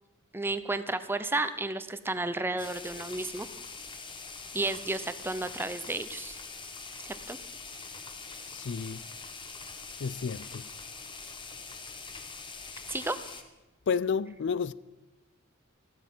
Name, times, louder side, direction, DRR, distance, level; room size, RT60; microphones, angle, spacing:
voice 1, 0.3-3.5 4.5-6.4 7.0-7.4 12.9-13.2, right 2 dB, 10° right, 0.7 m, -32 dB
sound 1, 2.6-13.4, left 4 dB, 25° left, 1.2 m, -43 dB
voice 2, 8.5-9.0 10.0-10.7 13.9-14.7, left 6 dB, 55° left, 0.4 m, -31 dB
15.0 x 12.0 x 5.5 m
head